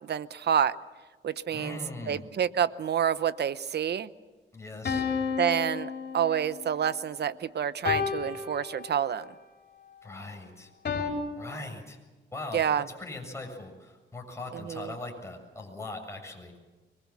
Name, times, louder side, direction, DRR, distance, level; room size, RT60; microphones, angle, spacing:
voice 1, 0.0-0.8 1.2-1.8 2.1-4.1 5.4-9.3 12.5-12.9 14.5-15.0, right 9 dB, 55° right, 15 dB, 0.9 m, -28 dB
voice 2, 1.5-2.2 4.5-5.1 10.0-10.7 11.4-12.0 12.3-12.6 13.0-16.5, left 2 dB, 15° left, 2 dB, 7.2 m, -40 dB
sound 1, 4.9-6.6 7.9-9.3 10.9-11.1, left 6 dB, 55° left, 5.2 m, -31 dB
24.5 x 22.0 x 7.5 m, 1.3 s
cardioid pair, 85°, 20 cm